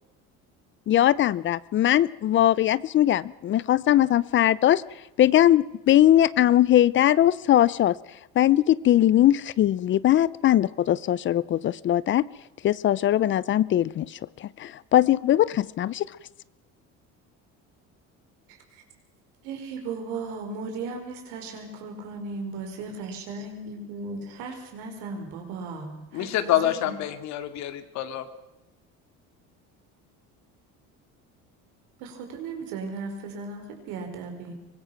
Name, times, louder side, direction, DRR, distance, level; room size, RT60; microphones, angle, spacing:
voice 1, 0.9-4.8 5.2-8.0 8.4-12.3 12.6-16.1, left 12 dB, 40° left, 20 dB, 0.6 m, -20 dB
voice 2, 19.4-26.9 32.0-34.5, right 4 dB, 85° right, 4 dB, 5.5 m, -36 dB
voice 3, 26.1-28.3, left 12 dB, 60° left, 9 dB, 2.4 m, -26 dB
23.5 x 20.5 x 6.0 m, 0.95 s
cardioid pair, 140°, 30 cm